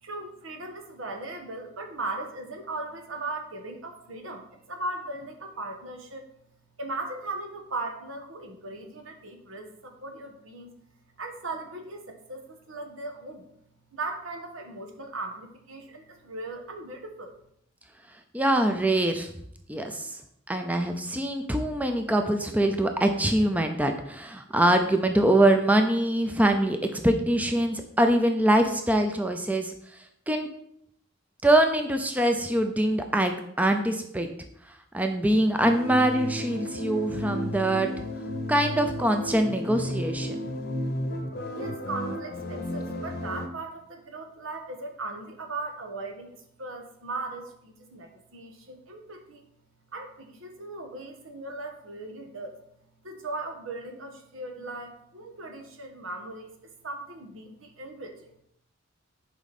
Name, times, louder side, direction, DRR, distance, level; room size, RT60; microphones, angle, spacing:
voice 1, 0.0-6.3 6.8-10.7 11.2-13.5 13.9-17.4 41.5-49.5 49.9-52.6 53.0-58.3, right 2 dB, 80° right, 4 dB, 1.4 m, -38 dB
voice 2, 18.3-19.3 19.7-20.2 20.5-30.5 31.4-34.3 34.9-37.9 38.5-40.4, right 1 dB, 10° right, 5 dB, 0.5 m, -24 dB
sound 1, 35.6-43.5, equal, 50° left, 0.8 m, -33 dB
10.5 x 5.0 x 4.2 m, 0.72 s
head